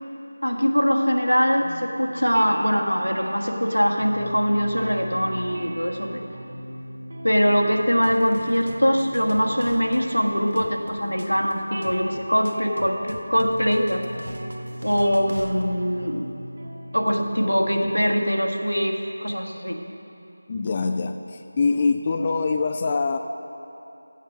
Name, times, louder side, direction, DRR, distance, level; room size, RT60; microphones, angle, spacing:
voice 1, 0.4-6.3 7.2-14.0 14.8-16.3 16.9-19.8, equal, 90° left, 1 dB, 1.4 m, -22 dB
sound 1, 1.6-18.0, right 1 dB, 45° right, 2.2 m, -39 dB
sound 2, 8.0-15.6, equal, 80° right, 1.1 m, -42 dB
voice 2, 20.5-23.2, left 4 dB, 20° left, 6 dB, 0.3 m, -24 dB
14.0 x 9.1 x 5.1 m, 2.9 s
figure-of-eight pair, 165°, 0 cm